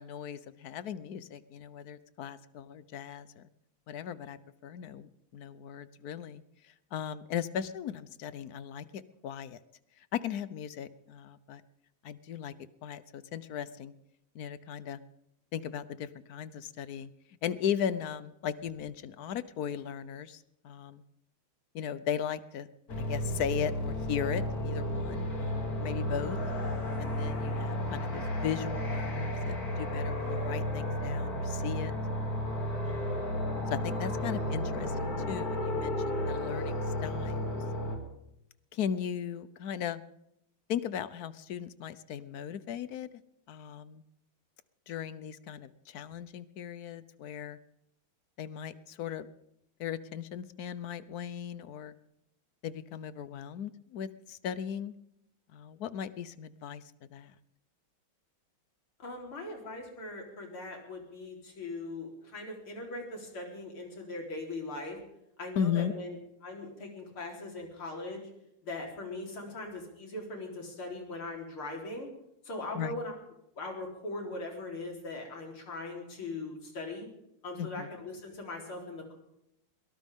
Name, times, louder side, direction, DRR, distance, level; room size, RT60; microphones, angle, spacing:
voice 1, 0.0-3.5 3.9-9.6 10.1-11.6 12.0-12.5 12.8-13.9 14.3-15.0 15.5-17.1 17.4-21.0 21.7-22.7 23.0-26.4 27.0-31.9 32.8-33.3 33.7-37.5 38.7-40.0 40.7-43.1 43.5-44.0 44.9-47.6 48.4-49.3 49.8-51.9 52.6-54.9 55.5-56.8 57.1-57.3 65.6-65.9 72.7-73.0 77.6-77.9, left 8 dB, 60° left, 15 dB, 1.0 m, -37 dB
sound 1, 22.9-38.0, left 1 dB, 45° left, 3.1 m, -33 dB
voice 2, 59.0-65.0 65.4-66.2 66.4-68.3 68.6-72.1 72.4-73.1 73.6-77.1 77.4-79.1, left 2 dB, 85° left, 0 dB, 4.7 m, -40 dB
22.5 x 18.0 x 3.6 m, 0.81 s
omnidirectional pair, 2.3 m